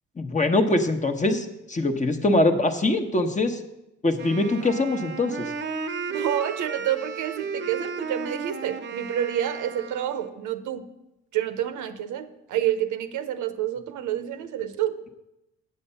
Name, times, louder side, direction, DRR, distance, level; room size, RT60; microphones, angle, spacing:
voice 1, 0.2-3.6 4.0-5.5, left 2 dB, 25° left, 6 dB, 1.0 m, -23 dB
Wind instrument woodwind instrument, 4.2-10.4, right 5 dB, 35° right, 0.8 m, -34 dB
voice 2, 6.1-10.9 11.3-15.0, right 11 dB, 80° right, 10 dB, 0.8 m, -28 dB
8.0 x 7.6 x 5.6 m, 0.90 s
cardioid pair, 90°, 30 cm